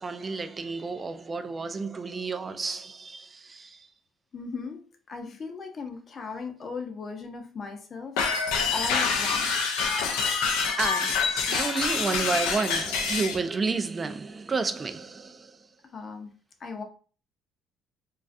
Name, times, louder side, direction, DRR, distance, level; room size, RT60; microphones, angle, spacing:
voice 1, 0.0-3.9 10.3-15.7, right 4 dB, 30° right, 0.3 m, -31 dB
voice 2, 4.3-8.3 8.7-9.8 15.9-16.3 16.6-16.8, left 4 dB, 45° left, 0.6 m, -37 dB
sound 1, 8.2-13.4, left 5 dB, 85° left, 0.4 m, -26 dB
2.3 x 2.3 x 2.5 m
supercardioid pair, 70°, 0 cm